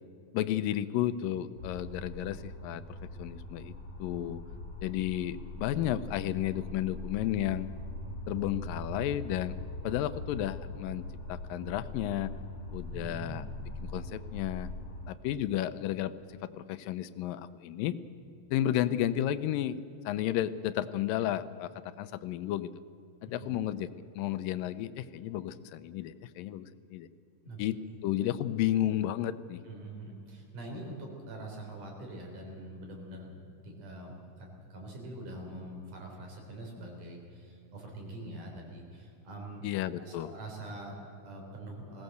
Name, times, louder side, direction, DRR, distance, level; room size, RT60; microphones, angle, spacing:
voice 1, 0.3-3.7 4.0-4.4 4.8-7.7 8.3-9.6 9.8-12.3 12.7-13.4 13.9-14.7 15.1-16.1 16.4-18.0 18.5-22.7 23.2-23.9 24.1-27.1 27.6-29.6 39.6-40.3, left 12 dB, 80° left, 14 dB, 2.3 m, -32 dB
sound 1, 1.6-15.1, left 1 dB, 45° left, 3.4 m, -42 dB
voice 2, 12.9-13.4 23.3-23.5 27.4-27.6 29.6-39.6 40.0-42.0, right 1 dB, 65° right, 0 dB, 5.2 m, -44 dB
20.0 x 17.0 x 8.0 m, 2.7 s
omnidirectional pair, 4.0 m